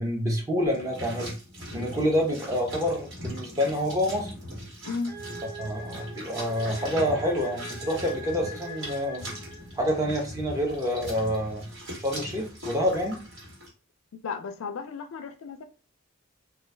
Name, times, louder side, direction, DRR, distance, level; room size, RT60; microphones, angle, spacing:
voice 1, 0.0-1.3 1.7-4.3 5.6-9.3 9.8-11.6 12.0-13.2, equal, 15° right, 0.7 m, -27 dB
sound 1, 0.7-13.7, equal, 60° right, 1.6 m, -40 dB
sound 2, 5.0-9.9, right 1 dB, 40° right, 0.9 m, -42 dB
voice 2, 14.2-15.6, left 4 dB, 70° left, 0.4 m, -34 dB
3.1 x 2.3 x 3.2 m
head